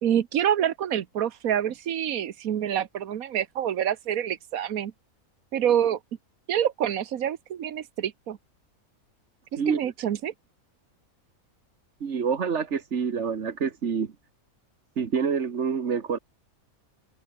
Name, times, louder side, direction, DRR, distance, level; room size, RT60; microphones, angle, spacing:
voice 1, 0.0-4.9 5.5-6.0 6.5-8.4 9.5-10.3, right 10 dB, 70° right, 1.4 m, -27 dB
voice 2, 12.0-14.1 15.0-16.2, right 6 dB, 55° right, 1.7 m, -27 dB
omnidirectional pair, 1.5 m